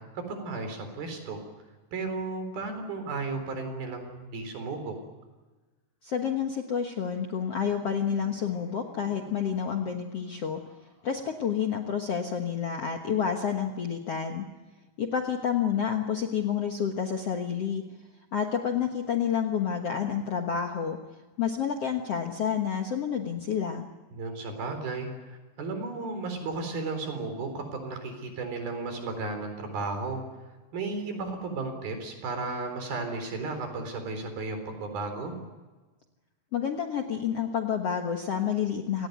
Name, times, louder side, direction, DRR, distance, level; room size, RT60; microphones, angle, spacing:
voice 1, 0.1-1.4 1.9-5.0 24.1-30.2 30.7-35.3, right 3 dB, 55° right, 6 dB, 5.7 m, -34 dB
voice 2, 6.0-10.6 11.0-14.4 15.0-17.8 18.3-21.0 21.4-23.8 36.5-39.1, left 8 dB, 85° left, 3 dB, 1.3 m, -29 dB
Laughter, 6.7-11.7, equal, 10° left, 5.0 m, -54 dB
28.0 x 18.5 x 9.4 m, 1.3 s
omnidirectional pair, 5.1 m